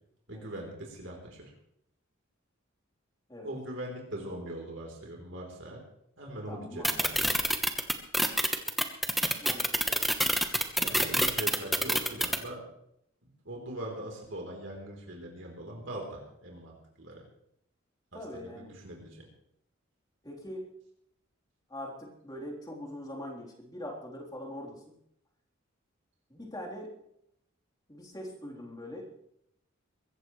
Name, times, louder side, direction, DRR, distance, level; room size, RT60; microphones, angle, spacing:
voice 1, 0.3-1.5 3.4-5.8 6.2-7.3 10.8-12.6 13.4-17.2 18.3-19.3, right 1 dB, 60° right, 0 dB, 3.7 m, -41 dB
voice 2, 6.5-7.3 9.4-10.0 18.1-18.8 20.2-20.7 21.7-25.0 26.3-26.9 27.9-29.1, left 1 dB, 20° left, -2 dB, 3.6 m, -42 dB
sound 1, 6.8-12.4, equal, ahead, 1.1 m, -26 dB
22.5 x 15.0 x 3.2 m, 0.73 s
head